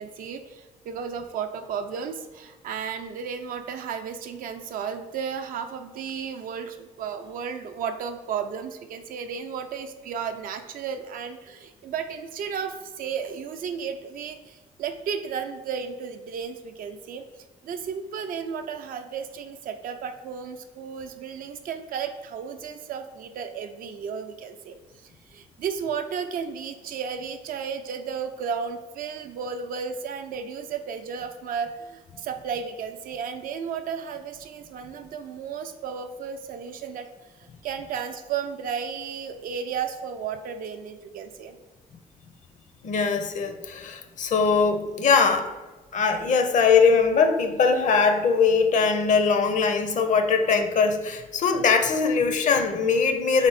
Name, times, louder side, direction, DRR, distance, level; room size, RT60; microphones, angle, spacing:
voice 1, 0.0-17.2 17.6-37.1 37.4-41.6, right 7 dB, 75° right, 7 dB, 0.5 m, -33 dB
voice 2, 42.8-45.5 45.9-53.5, left 5 dB, 60° left, 7 dB, 0.6 m, -21 dB
3.5 x 3.5 x 4.0 m, 1.2 s
cardioid pair, 80°, 15 cm